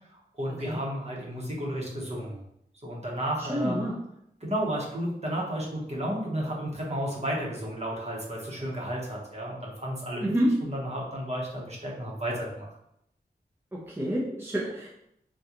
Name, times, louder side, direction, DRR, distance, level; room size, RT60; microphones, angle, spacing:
voice 1, 0.1-2.4 2.8-3.8 4.4-10.3 10.6-12.7, equal, 40° right, -3 dB, 0.9 m, -32 dB
voice 2, 3.5-4.0 10.2-10.5 13.9-14.9, equal, 15° right, -5 dB, 0.6 m, -28 dB
3.6 x 2.3 x 2.9 m, 0.77 s
wide cardioid pair, 85°, 17 cm